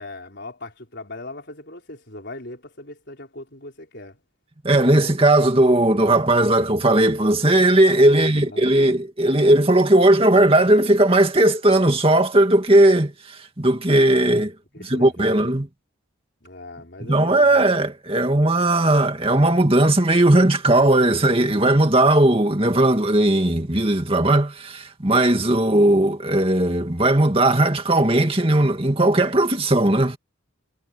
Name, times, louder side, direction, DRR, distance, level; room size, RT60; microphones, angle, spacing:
voice 1, 0.0-4.2 8.1-8.7 14.7-15.5 16.4-17.7, left 2 dB, 50° left, 4.5 m, -39 dB
voice 2, 4.6-14.5 14.8-15.7 17.0-30.2, right 1 dB, 25° right, 2.2 m, -17 dB
head